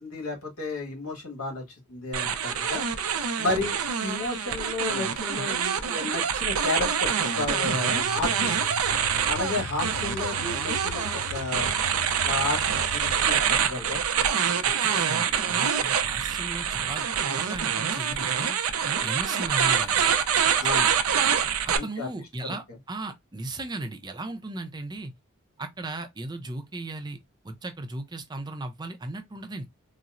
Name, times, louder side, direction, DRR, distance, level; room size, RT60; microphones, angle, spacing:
voice 1, 0.0-1.6 1.9-2.8 3.1-8.7 9.3-11.7 12.2-14.0 20.6-20.9 21.8-22.1, left 3 dB, 80° left, 1.4 m, -32 dB
sound 1, 2.1-21.8, right 7 dB, 90° right, 0.5 m, -26 dB
sound 2, 7.7-13.4, left 9 dB, 65° left, 0.3 m, -40 dB
voice 2, 14.6-17.1 17.4-18.6 19.0-20.2 21.7-25.1 25.6-27.2 27.4-29.7, right 2 dB, 20° right, 0.5 m, -36 dB
4.0 x 2.0 x 2.4 m
head